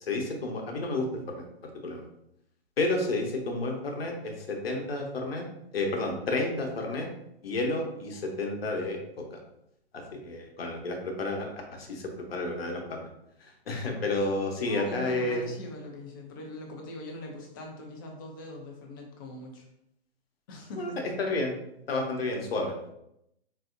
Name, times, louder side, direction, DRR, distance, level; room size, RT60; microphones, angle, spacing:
voice 1, 0.0-1.1 1.3-2.1 2.8-5.4 5.7-7.1 7.4-9.4 9.9-13.1 13.4-15.4 20.8-20.9 21.2-21.5 21.9-22.9, left 2 dB, 65° left, 2 dB, 0.9 m, -31 dB
voice 2, 14.7-19.7 20.5-21.0, left 2 dB, 20° left, 1 dB, 0.4 m, -41 dB
3.4 x 2.7 x 2.5 m, 0.79 s
figure-of-eight pair, 130°, 32 cm